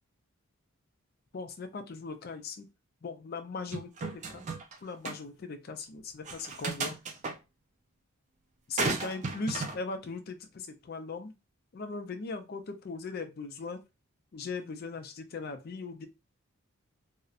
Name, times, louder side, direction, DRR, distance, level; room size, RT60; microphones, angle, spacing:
voice 1, 1.3-2.7 3.0-4.4 4.8-6.9 8.7-11.3 11.7-13.8 14.3-16.1, left 4 dB, 45° left, 7 dB, 0.4 m, -39 dB
sound 1, 3.7-4.7 5.0-5.2 6.2-7.3 8.8-9.8, right 4 dB, 30° right, 0.3 m, -34 dB
2.7 x 2.0 x 2.4 m, 0.25 s
head